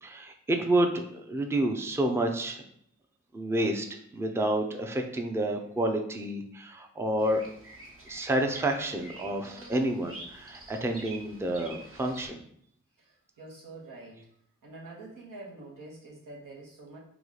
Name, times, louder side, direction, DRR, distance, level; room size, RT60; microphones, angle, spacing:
voice 1, 0.0-2.6 3.3-7.4 8.1-12.4, right 1 dB, 10° right, 4 dB, 0.5 m, -29 dB
Bird vocalization bird call bird song, 7.2-12.3, right 2 dB, 45° right, 1.2 m, -47 dB
voice 2, 13.0-14.3 14.6-17.0, right 2 dB, 80° right, -4 dB, 1.1 m, -46 dB
3.0 x 2.4 x 3.8 m, 0.67 s
cardioid pair, 45°, 31 cm